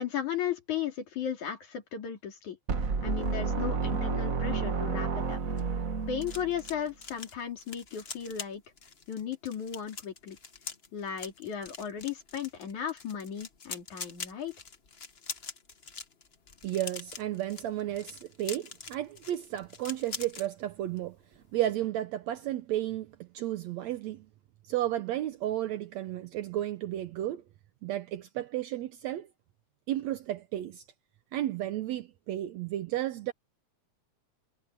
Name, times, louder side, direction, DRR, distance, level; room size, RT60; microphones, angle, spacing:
voice 1, 0.0-2.6 3.0-5.4 6.1-8.6 9.1-10.4 10.9-14.6, left 8 dB, 80° left, 4.5 m, -35 dB
sound 1, 2.7-6.7, right 4 dB, 40° right, 1.4 m, -31 dB
sound 2, 5.3-20.5 20.8-21.1 21.3-21.6, left 4 dB, 50° left, 0.7 m, -44 dB
voice 2, 16.6-21.2 21.5-24.3 24.7-27.4 27.8-29.3 29.9-30.8 31.3-33.3, right 13 dB, 70° right, 2.0 m, -33 dB
omnidirectional pair, 3.4 m